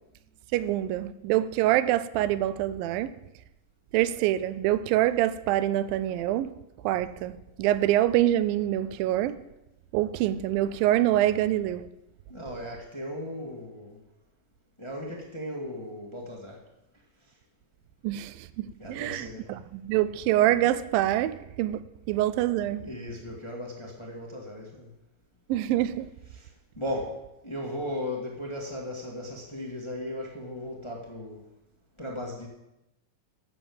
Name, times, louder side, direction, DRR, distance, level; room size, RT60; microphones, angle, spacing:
voice 1, 0.5-3.1 3.9-6.6 6.8-9.4 9.9-11.9 18.0-21.8 22.1-22.9 25.5-26.1, right 13 dB, 90° right, 2.3 m, -25 dB
voice 2, 12.3-14.0 14.8-16.6 18.8-19.5 22.7-24.9 26.3-31.5 32.0-32.5, left 1 dB, 25° left, 0.6 m, -37 dB
10.5 x 7.2 x 7.8 m
omnidirectional pair, 4.0 m